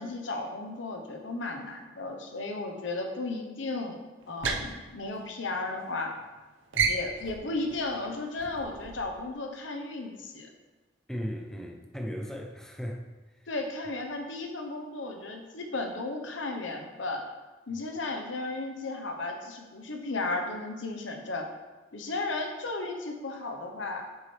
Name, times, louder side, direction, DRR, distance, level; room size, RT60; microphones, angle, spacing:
voice 1, 0.0-4.0 4.3-6.1 6.8-10.5 13.5-17.2 17.7-21.5 21.9-24.1, left 2 dB, 85° left, 4 dB, 1.0 m, -34 dB
sound 1, 4.2-5.9 6.1-6.4 6.7-9.3, right 5 dB, 85° right, 0.8 m, -33 dB
voice 2, 11.1-13.5, equal, 5° left, 1 dB, 0.6 m, -37 dB
7.5 x 6.1 x 3.3 m, 1.2 s
head